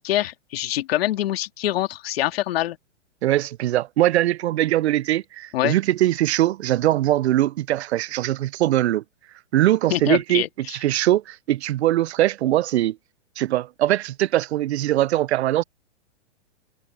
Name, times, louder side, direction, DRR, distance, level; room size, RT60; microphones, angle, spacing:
voice 1, 0.0-2.8 5.5-5.8 9.9-10.8, left 14 dB, 55° left, 2.2 m, -25 dB
voice 2, 3.2-9.0 9.5-13.0 13.4-15.6, right 14 dB, 65° right, 0.6 m, -21 dB
hypercardioid pair, 150°, 35 cm